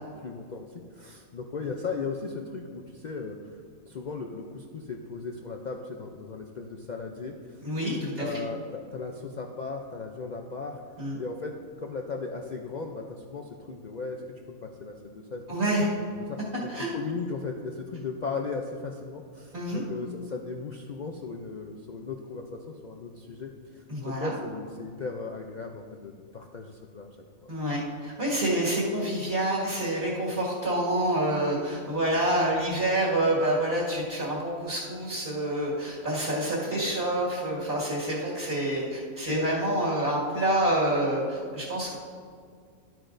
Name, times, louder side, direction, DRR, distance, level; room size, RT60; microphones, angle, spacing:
voice 1, 0.2-3.6 3.9-10.8 11.2-14.2 14.5-15.4 16.1-27.2 27.4-27.5, left 4 dB, 70° left, 2 dB, 0.4 m, -37 dB
voice 2, 7.6-8.4 11.0-11.2 15.5-15.9 16.7-16.9 19.5-19.8 23.9-24.3 27.5-41.9, right 1 dB, 45° right, -7 dB, 2.2 m, -27 dB
12.0 x 9.0 x 2.6 m, 2.1 s
omnidirectional pair, 1.5 m